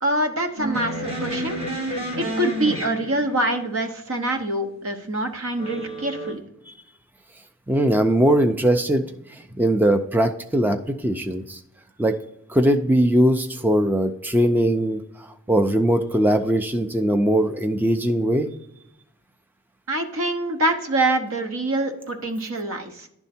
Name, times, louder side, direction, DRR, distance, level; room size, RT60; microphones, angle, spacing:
voice 1, 0.0-1.6 2.2-6.4 19.9-23.1, right 1 dB, 65° right, 6 dB, 0.9 m, -25 dB
sound 1, 0.6-3.5 5.6-6.3, right 1 dB, 30° right, 2.2 m, -30 dB
voice 2, 7.7-9.1 9.6-11.6 12.0-12.1 12.5-15.0 15.5-18.5, right 1 dB, 10° right, 7 dB, 0.4 m, -20 dB
10.5 x 3.6 x 4.2 m, 0.80 s
head